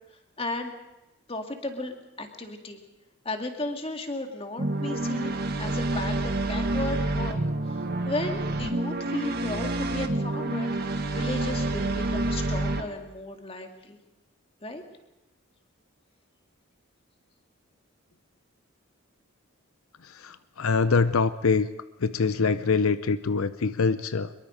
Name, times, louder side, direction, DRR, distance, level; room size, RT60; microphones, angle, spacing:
voice 1, 0.1-0.7 1.3-2.8 3.2-10.8 11.1-14.0 14.6-14.8, left 2 dB, 25° left, 5 dB, 2.1 m, -35 dB
sound 1, 4.6-12.8, right 2 dB, 45° right, 1.7 m, -28 dB
voice 2, 20.0-21.7 22.0-24.3, left 4 dB, 85° left, 13 dB, 0.7 m, -24 dB
24.0 x 22.5 x 5.1 m, 0.98 s
head